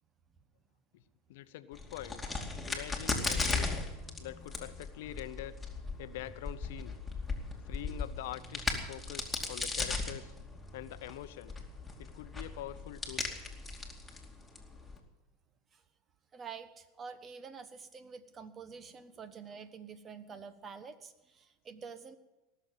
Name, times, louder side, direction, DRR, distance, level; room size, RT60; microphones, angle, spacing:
voice 1, 1.3-2.2 2.7-3.8 4.2-5.6 6.0-7.0 7.7-10.3 10.7-11.6 12.0-13.3, left 14 dB, 70° left, 14 dB, 0.7 m, -44 dB
Crack, 1.7-15.0, left 3 dB, 10° left, 2.5 m, -37 dB
voice 2, 16.3-22.2, right 6 dB, 30° right, 13 dB, 1.2 m, -48 dB
18.0 x 7.0 x 9.3 m, 1.1 s
hypercardioid pair, 95°, 0 cm